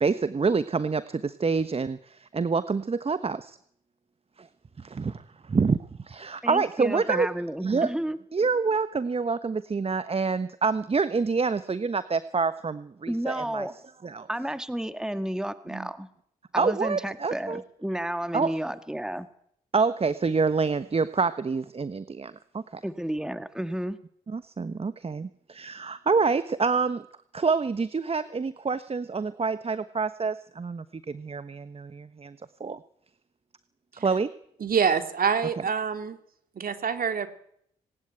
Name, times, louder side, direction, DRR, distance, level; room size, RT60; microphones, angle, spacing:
voice 1, 0.0-3.6 4.4-4.5 4.8-5.8 6.0-7.3 7.6-7.9 8.3-13.7 14.0-14.3 15.7-15.9 16.6-17.6 18.3-18.5 19.7-22.8 24.3-27.0 27.3-32.8 34.0-34.3, right 4 dB, 35° right, 14 dB, 1.2 m, -27 dB
voice 2, 6.4-8.2 13.1-13.8 14.3-16.1 16.5-19.3 22.8-24.0, right 1 dB, 5° right, 11 dB, 1.8 m, -32 dB
voice 3, 34.6-36.2 36.6-37.3, right 6 dB, 55° right, 8 dB, 2.9 m, -26 dB
20.0 x 19.0 x 9.2 m, 0.69 s
hypercardioid pair, 40°, 18 cm